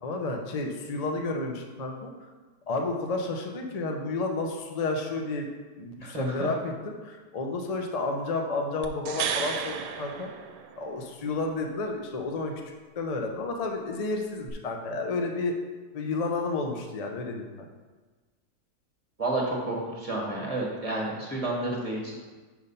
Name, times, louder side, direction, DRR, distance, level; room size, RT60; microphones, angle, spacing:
voice 1, 0.0-2.1 2.7-5.5 5.8-10.3 10.8-12.5 13.0-15.6 15.9-17.7, left 3 dB, 80° left, 3 dB, 0.3 m, -31 dB
voice 2, 6.0-6.5 19.2-22.2, right 2 dB, 25° right, -2 dB, 1.2 m, -30 dB
sound 1, 8.8-11.1 14.5-14.6, right 7 dB, 85° right, 1.2 m, -33 dB
5.3 x 4.7 x 5.6 m, 1.3 s
omnidirectional pair, 1.7 m